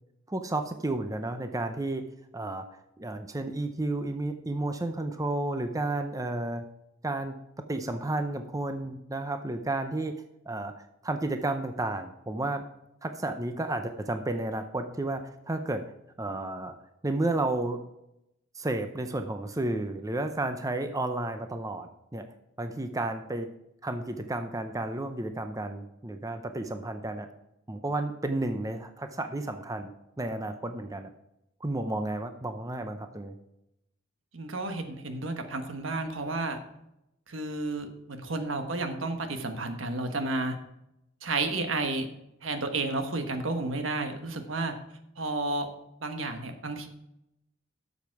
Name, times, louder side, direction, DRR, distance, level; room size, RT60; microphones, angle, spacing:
voice 1, 0.3-2.0 2.3-2.7 3.0-6.6 7.0-7.4 7.7-10.1 10.5-10.7 11.0-12.6 13.0-15.9 16.2-16.8 17.0-17.8 18.6-22.3 22.6-23.5 23.8-27.3 27.7-29.9 30.2-31.1 31.6-33.3, right 2 dB, 15° right, 8 dB, 0.6 m, -32 dB
voice 2, 34.3-36.6 37.3-40.6 41.2-42.1 42.4-44.7 45.2-45.7 46.0-46.9, right 2 dB, 75° right, 6 dB, 1.4 m, -31 dB
12.0 x 7.2 x 4.7 m, 0.84 s
head